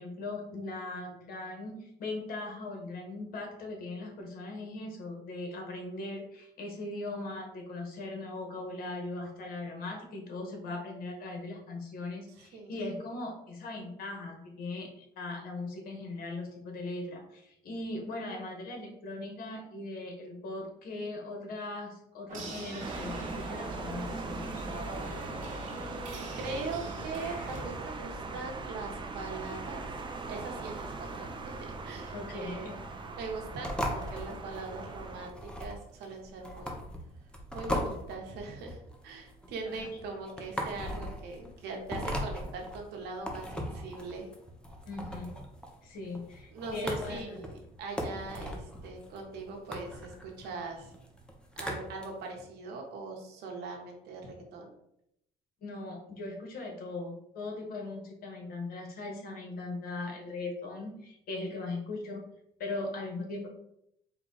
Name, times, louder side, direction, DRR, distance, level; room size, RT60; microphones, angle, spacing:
voice 1, 0.0-24.7 32.1-32.8 39.6-39.8 44.9-45.4 45.8-47.4 55.6-62.2 62.6-63.5, left 2 dB, 60° left, 2 dB, 1.3 m, -39 dB
voice 2, 12.4-12.8 25.7-29.8 30.2-31.6 31.8-32.7 33.2-36.8 37.5-44.3 46.5-50.9 51.6-54.7, right 3 dB, 75° right, 2 dB, 1.1 m, -41 dB
sound 1, 22.3-27.6, right 2 dB, 50° right, 1.2 m, -43 dB
sound 2, 22.8-35.3, right 3 dB, 30° right, 0.6 m, -40 dB
sound 3, 33.6-52.1, equal, 5° left, 0.8 m, -39 dB
4.5 x 2.3 x 3.9 m, 0.75 s
cardioid pair, 110°, 17 cm